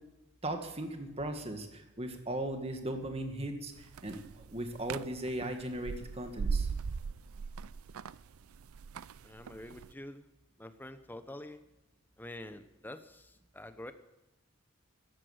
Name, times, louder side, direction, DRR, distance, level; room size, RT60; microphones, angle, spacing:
voice 1, 0.4-4.2 4.5-6.7, right 1 dB, 30° right, 5 dB, 1.9 m, -37 dB
sound 1, 3.8-9.9, right 5 dB, 85° right, 0.4 m, -39 dB
voice 2, 9.2-10.3 10.6-11.6 12.2-13.9, left 1 dB, 10° left, 10 dB, 1.0 m, -47 dB
14.5 x 11.5 x 8.0 m, 1.0 s
head